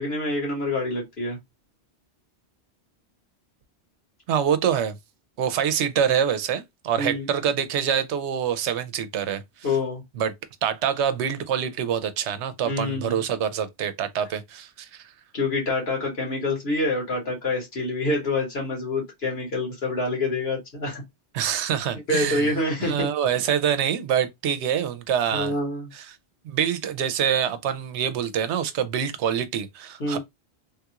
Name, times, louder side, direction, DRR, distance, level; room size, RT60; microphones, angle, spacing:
voice 1, 0.0-1.4 7.0-7.3 9.6-10.0 12.6-13.2 15.3-21.0 22.1-23.1 25.3-25.9 30.0-30.2, left 2 dB, 65° left, 1.7 m, -26 dB
voice 2, 4.3-5.0 5.4-9.4 10.2-10.3 10.6-15.1 21.3-22.5 22.8-25.5 25.9-26.2 26.4-30.2, right 8 dB, 80° right, 0.9 m, -25 dB
3.4 x 2.4 x 2.8 m
omnidirectional pair, 1.1 m